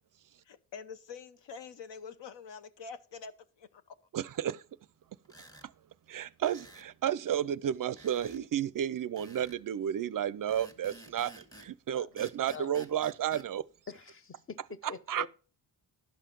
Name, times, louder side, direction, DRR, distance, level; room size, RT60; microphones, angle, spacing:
voice 1, 0.4-3.9, left 5 dB, 75° left, 1.0 m, -46 dB
voice 2, 4.1-4.6 6.1-13.6 15.1-15.3, right 10 dB, 50° right, 0.4 m, -32 dB
sound 1, 5.3-5.7 6.4-6.9 8.0-8.4 9.2-9.6 10.5-11.7 12.2-13.5, right 1 dB, 10° left, 1.4 m, -52 dB
voice 3, 13.9-15.3, left 5 dB, 30° left, 0.7 m, -44 dB
11.5 x 5.6 x 5.2 m
cardioid pair, 95°, 44 cm